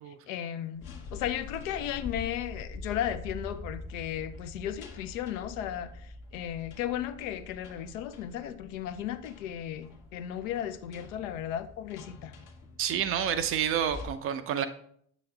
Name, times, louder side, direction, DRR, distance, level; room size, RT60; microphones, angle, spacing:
voice 1, 0.1-0.8 1.1-12.3, left 10 dB, 65° left, 0.6 m, -35 dB
sound 1, 0.7-14.1, left 3 dB, 45° left, 1.0 m, -45 dB
voice 2, 12.8-14.7, right 9 dB, 35° right, 0.4 m, -29 dB
7.1 x 6.8 x 2.3 m
hypercardioid pair, 75°, 43 cm